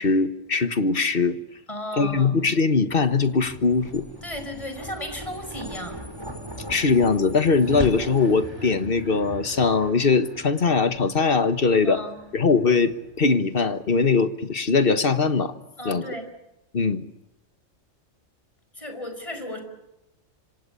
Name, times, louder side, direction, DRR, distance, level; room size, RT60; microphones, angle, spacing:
voice 1, 0.0-1.4 2.0-4.1 6.7-12.0 12.3-15.5 15.8-16.1 16.7-17.0, left 4 dB, 50° left, 10 dB, 1.6 m, -21 dB
voice 2, 1.7-2.4 4.2-6.0 11.8-12.2 15.8-16.3 18.7-19.6, left 1 dB, 25° left, 7 dB, 5.0 m, -34 dB
sound 1, 2.7-13.3, right 1 dB, 20° right, 4.8 m, -39 dB
26.5 x 26.0 x 7.0 m, 0.92 s
omnidirectional pair, 1.3 m